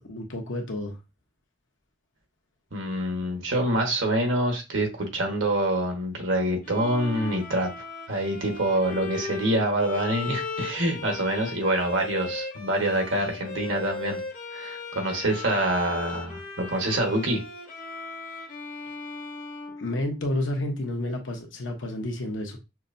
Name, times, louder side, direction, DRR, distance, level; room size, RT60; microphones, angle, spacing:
voice 1, 0.0-1.0 19.8-22.6, left 1 dB, 85° left, 1.0 m, -30 dB
voice 2, 2.7-7.7 8.1-14.2 14.5-17.4, right 1 dB, 90° right, 1.3 m, -26 dB
Bowed string instrument, 6.6-20.5, left 4 dB, 45° left, 0.6 m, -37 dB
5.9 x 2.1 x 2.6 m
head